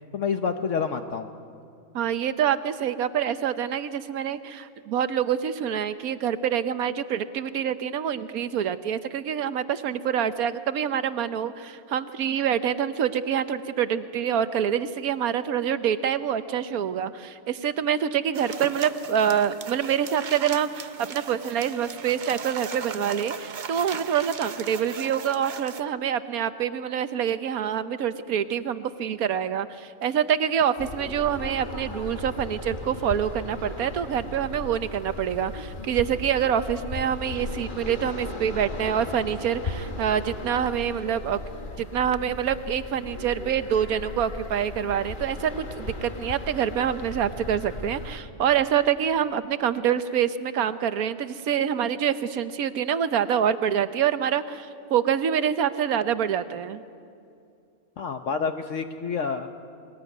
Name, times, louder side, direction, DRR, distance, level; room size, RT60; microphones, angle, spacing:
voice 1, 0.1-1.3 58.0-59.5, left 6 dB, 60° left, 7 dB, 1.1 m, -28 dB
voice 2, 1.9-41.4 41.8-56.8, right 9 dB, 85° right, 12 dB, 1.3 m, -26 dB
sound 1, 18.3-25.8, right 6 dB, 45° right, 0.6 m, -38 dB
sound 2, 30.8-48.2, left 2 dB, 35° left, 1.6 m, -37 dB
22.0 x 19.5 x 9.3 m, 2.5 s
omnidirectional pair, 1.5 m